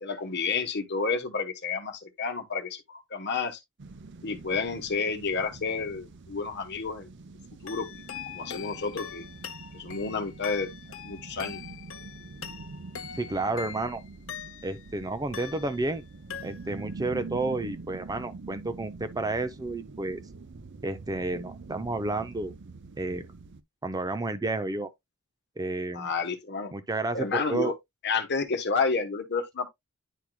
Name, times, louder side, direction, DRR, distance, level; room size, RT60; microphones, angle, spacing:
voice 1, 0.0-3.6 4.2-7.1 7.6-8.0 8.3-9.2 9.7-10.7 11.0-11.6 25.9-26.7 27.1-27.7 28.0-29.7, left 4 dB, 55° left, 1.1 m, -30 dB
sound 1, 3.8-23.6, right 3 dB, 60° right, 0.7 m, -45 dB
sound 2, 7.7-14.9 15.3-16.0 16.3-16.9, left 8 dB, 70° left, 0.7 m, -43 dB
voice 2, 13.2-14.0 14.6-16.0 16.4-20.2 20.8-22.5 23.0-23.3 23.8-24.9 25.6-26.1 26.7-27.7, right 2 dB, 20° right, 0.5 m, -31 dB
10.0 x 4.6 x 2.2 m
head